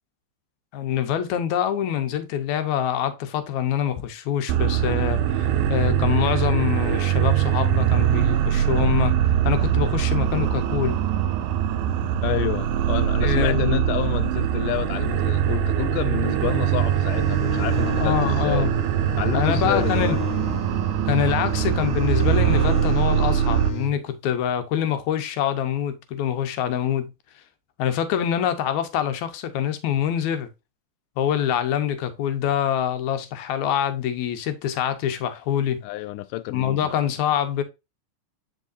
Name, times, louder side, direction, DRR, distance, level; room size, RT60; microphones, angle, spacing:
voice 1, 0.7-9.2 9.4-11.0 13.2-13.9 17.8-18.7 19.3-20.2 21.1-27.1 27.8-30.5 31.2-35.8 36.5-37.6, left 10 dB, 70° left, 2.1 m, -25 dB
sound 1, 4.5-23.7, right 10 dB, 80° right, 2.1 m, -22 dB
voice 2, 12.2-18.7 19.2-20.2 35.8-36.8, left 15 dB, 90° left, 2.2 m, -29 dB
sound 2, 16.3-23.9, right 2 dB, 50° left, 1.1 m, -30 dB
8.9 x 4.7 x 2.6 m
omnidirectional pair, 3.7 m